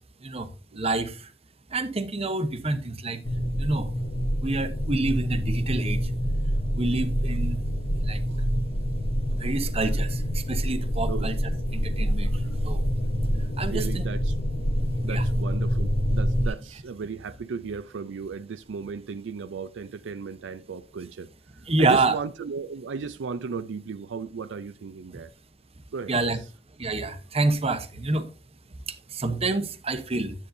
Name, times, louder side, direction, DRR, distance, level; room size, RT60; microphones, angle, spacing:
voice 1, 0.7-1.3 1.7-3.2 3.6-3.9 4.4-6.1 6.8-7.6 8.0-8.2 9.3-11.3 11.7-12.8 13.6-14.0 15.1-15.2 21.7-22.1 26.1-26.4 26.8-28.3 29.1-30.3, right 2 dB, 35° right, 1.0 m, -27 dB
sound 1, 3.2-16.5, equal, 50° left, 0.9 m, -26 dB
voice 2, 13.3-14.4 15.0-21.3 21.8-25.3 25.9-26.1, right 5 dB, 80° right, 0.4 m, -35 dB
10.5 x 8.3 x 2.6 m
head